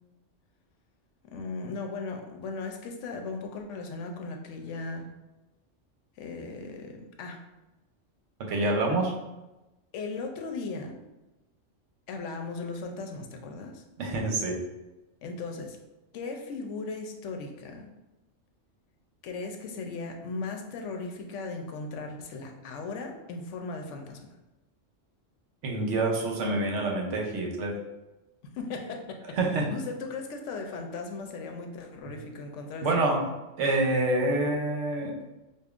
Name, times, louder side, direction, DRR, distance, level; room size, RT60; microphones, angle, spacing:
voice 1, 1.3-5.1 6.2-7.4 9.9-11.0 12.1-13.8 15.2-15.8 16.1-17.9 19.2-24.3 28.5-29.4 29.7-32.9, left 3 dB, 75° left, 4 dB, 0.9 m, -37 dB
voice 2, 8.5-9.1 14.0-14.6 25.6-27.8 29.3-29.7 32.1-32.2 32.8-35.1, right 2 dB, 75° right, 1 dB, 1.0 m, -27 dB
5.1 x 2.3 x 2.4 m, 1.0 s
omnidirectional pair, 1.3 m